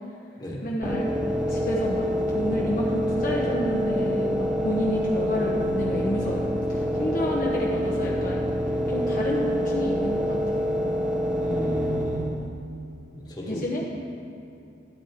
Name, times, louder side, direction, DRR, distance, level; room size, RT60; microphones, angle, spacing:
voice 1, 0.6-1.1 1.5-6.4 6.7-8.5 8.9-10.7 13.5-13.8, equal, 45° left, -4 dB, 0.9 m, -29 dB
sound 1, 0.8-12.5, equal, 5° right, 0.7 m, -26 dB
voice 2, 11.3-12.3 13.1-13.6, equal, 20° left, -3 dB, 1.5 m, -33 dB
12.5 x 9.0 x 3.6 m, 2.8 s
head